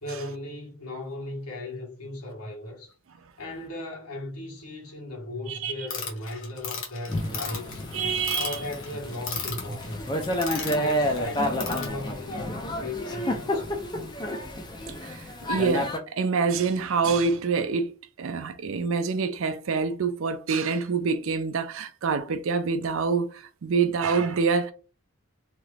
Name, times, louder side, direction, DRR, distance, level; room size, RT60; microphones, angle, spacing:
voice 1, 0.0-2.9 3.4-7.9 8.3-10.1 10.5-13.8, left 1 dB, 85° left, 1.4 m, -37 dB
voice 2, 5.5-5.9 7.9-8.6 15.0-17.9 18.2-24.7, right 5 dB, 60° right, 0.4 m, -26 dB
sound 1, 5.9-11.9, left 6 dB, 60° left, 1.0 m, -34 dB
Thunder / Rain, 7.1-16.0, left 1 dB, 20° left, 0.4 m, -30 dB
2.9 x 2.4 x 3.2 m
head